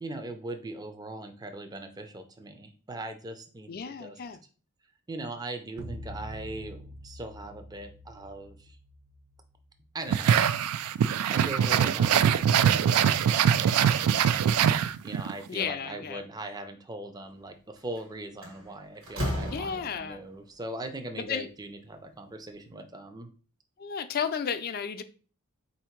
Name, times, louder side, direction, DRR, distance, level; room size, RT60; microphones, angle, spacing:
voice 1, 0.0-4.2 5.1-8.8 9.9-10.5 11.3-14.5 15.0-23.3, right 2 dB, 20° right, 0.5 m, -40 dB
voice 2, 3.7-4.4 15.5-16.2 19.5-20.2 21.2-21.5 23.8-25.0, left 7 dB, 45° left, 0.4 m, -33 dB
sound 1, 5.8-10.2, equal, 50° right, 0.7 m, -45 dB
sound 2, 10.1-15.3, right 8 dB, 85° right, 0.3 m, -23 dB
Slam, 17.8-18.0 18.4-20.3, equal, 65° right, 1.4 m, -34 dB
4.3 x 2.7 x 4.4 m
head